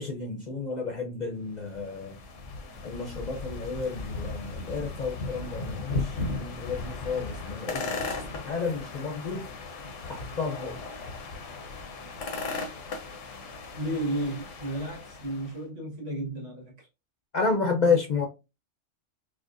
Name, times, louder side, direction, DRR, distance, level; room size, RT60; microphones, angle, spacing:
voice 1, 0.0-2.2 2.8-9.5 10.1-10.8 17.3-18.2, left 4 dB, 50° left, 0.6 m, -31 dB
sound 1, 1.5-15.6, left 3 dB, 90° left, 1.1 m, -37 dB
voice 2, 13.7-16.9, right 1 dB, 75° right, 1.8 m, -33 dB
4.9 x 2.1 x 2.5 m
omnidirectional pair, 1.2 m